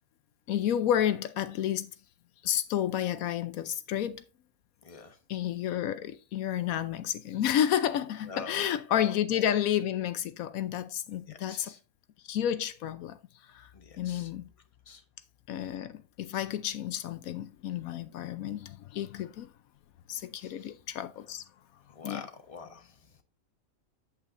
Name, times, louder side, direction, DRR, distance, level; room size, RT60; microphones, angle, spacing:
voice 1, 0.5-1.9 2.4-4.2 5.3-11.7 12.3-13.7 14.0-14.5 15.5-19.5 20.1-21.4 22.0-22.2, left 10 dB, 80° left, 1.1 m, -31 dB
voice 2, 4.8-5.2 8.2-9.5 11.3-11.8 13.7-14.3 14.9-15.0 20.4-20.7 21.9-23.2, left 4 dB, 25° left, 1.1 m, -46 dB
8.4 x 8.3 x 2.6 m
omnidirectional pair, 1.4 m